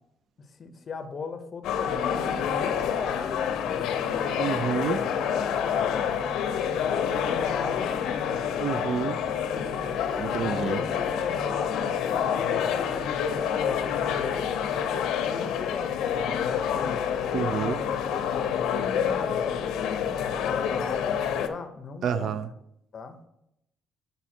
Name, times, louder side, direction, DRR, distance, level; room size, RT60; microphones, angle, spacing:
voice 1, 0.4-3.9 4.7-8.4 9.0-9.4 9.9-14.5 15.2-17.0 17.3-19.5 20.1-22.3 22.9-23.2, left 5 dB, 30° left, 7 dB, 0.7 m, -38 dB
sound 1, 1.6-21.5, left 8 dB, 85° left, 0.6 m, -28 dB
voice 2, 4.4-5.0 8.6-9.2 10.2-10.8 17.3-17.8 22.0-22.5, right 7 dB, 50° right, 15 dB, 0.4 m, -28 dB
6.0 x 5.3 x 4.3 m, 0.80 s
cardioid pair, 160°, 0 cm